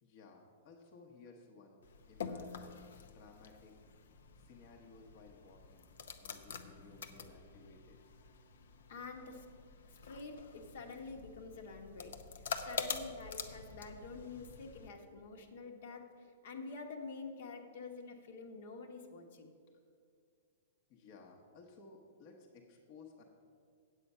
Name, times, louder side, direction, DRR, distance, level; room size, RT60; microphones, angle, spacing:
voice 1, 0.0-1.8 2.1-3.7 4.3-5.9 6.2-8.0 20.9-23.2, left 4 dB, 35° left, 1 dB, 1.0 m, -58 dB
sound 1, 1.8-14.9, left 6 dB, 80° left, 0.7 m, -46 dB
voice 2, 8.9-9.5 9.9-19.5, left 4 dB, 60° left, 4 dB, 1.2 m, -48 dB
8.3 x 8.2 x 5.5 m, 2.3 s
hypercardioid pair, 160°, 0 cm